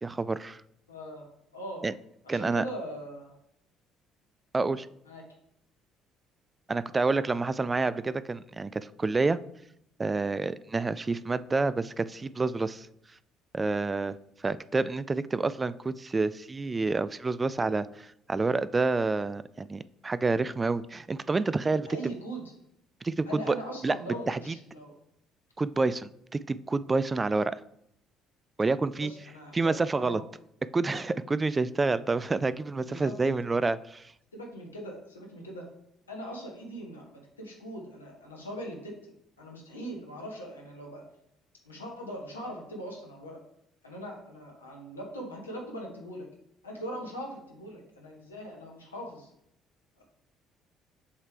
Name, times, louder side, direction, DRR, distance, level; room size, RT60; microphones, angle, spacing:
voice 1, 0.0-0.6 1.8-1.9 2.3-2.6 4.5-4.9 6.7-9.4 10.0-12.9 13.5-21.9 23.0-23.6 23.8-24.0 24.3-24.6 25.6-27.6 28.6-29.1 29.5-30.2 30.7-34.1, right 3 dB, 25° right, 16 dB, 0.3 m, -28 dB
voice 2, 0.9-1.3 1.5-1.9 2.2-3.4 5.1-5.2 21.9-22.5 23.3-24.9 29.0-30.2 32.8-33.2 34.3-35.6 36.1-39.0 39.4-41.0 41.6-43.4 43.8-46.3 46.6-49.3 50.0-50.1, equal, 85° left, -1 dB, 1.2 m, -41 dB
7.3 x 3.3 x 4.9 m, 0.75 s
figure-of-eight pair, 50°, 0 cm